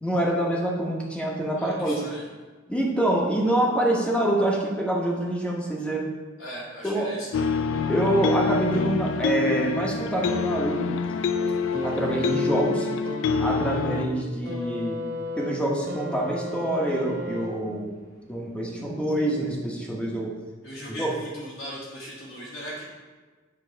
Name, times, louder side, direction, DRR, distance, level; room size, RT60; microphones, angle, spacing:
voice 1, 0.0-2.0 2.7-6.1 6.8-7.1 7.9-11.0 11.8-12.9 13.4-15.0 15.4-17.9 18.3-20.3 20.9-21.1, right 1 dB, 5° left, -2 dB, 0.9 m, -26 dB
voice 2, 1.5-2.3 6.4-7.5 20.6-22.8, equal, 85° left, -8 dB, 1.6 m, -38 dB
sound 1, 7.3-14.1, left 5 dB, 70° left, 0.3 m, -26 dB
sound 2, 11.7-17.9 18.9-19.0, equal, 85° right, 1.7 m, -35 dB
8.5 x 3.1 x 4.4 m, 1.3 s
head